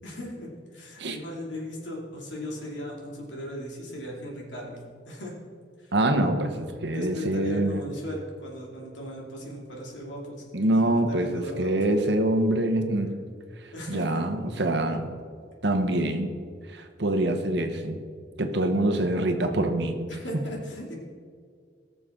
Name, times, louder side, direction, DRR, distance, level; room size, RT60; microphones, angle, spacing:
voice 1, 0.0-5.3 5.8-5.9 6.9-11.7 13.7-14.3 20.1-21.0, equal, 80° left, -2 dB, 2.7 m, -37 dB
voice 2, 5.9-7.8 10.5-13.1 13.9-15.1 15.6-16.3 16.7-18.0 18.4-20.0, right 1 dB, 65° right, 5 dB, 1.1 m, -25 dB
19.0 x 6.8 x 3.8 m, 2.1 s
head